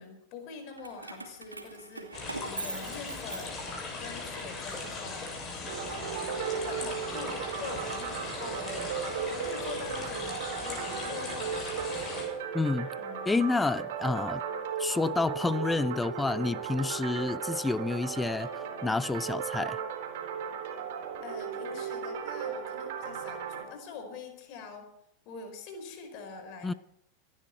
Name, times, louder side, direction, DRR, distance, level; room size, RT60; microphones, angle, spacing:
voice 1, 0.0-3.6 4.0-5.5 6.6-9.0 9.3-12.3 13.0-13.3 21.2-24.9 25.2-26.8, left 5 dB, 45° left, 4.8 m, -44 dB
Keys jangling, 0.8-3.9 4.4-5.7, right 2 dB, 90° right, 2.4 m, -42 dB
sound 1, 2.1-12.3, left 3 dB, 30° left, 7.1 m, -39 dB
sound 2, 5.7-23.6, right 6 dB, 55° right, 4.0 m, -36 dB
voice 2, 12.5-12.9 13.3-14.4 14.8-18.5 18.8-19.8 26.6-26.7, left 3 dB, 10° left, 0.5 m, -29 dB
25.5 x 11.0 x 4.6 m
figure-of-eight pair, 90°, 0 cm